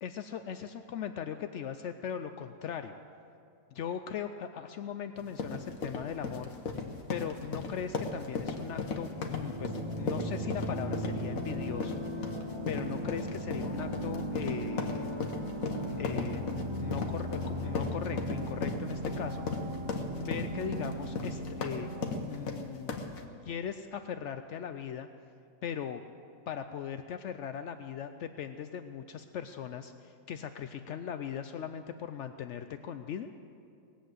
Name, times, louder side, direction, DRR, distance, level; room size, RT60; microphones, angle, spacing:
voice 1, 0.0-3.0 3.7-6.5 7.1-12.3 12.7-15.1 16.0-19.5 20.2-21.9 22.3-23.0 23.4-25.1 25.6-26.0 26.5-33.3, left 8 dB, 80° left, 8 dB, 0.6 m, -39 dB
sound 1, 5.2-23.2, left 4 dB, 55° left, 1.5 m, -36 dB
sound 2, 9.2-22.2, right 1 dB, 20° right, 1.0 m, -37 dB
19.0 x 8.3 x 7.8 m, 2.6 s
omnidirectional pair, 1.8 m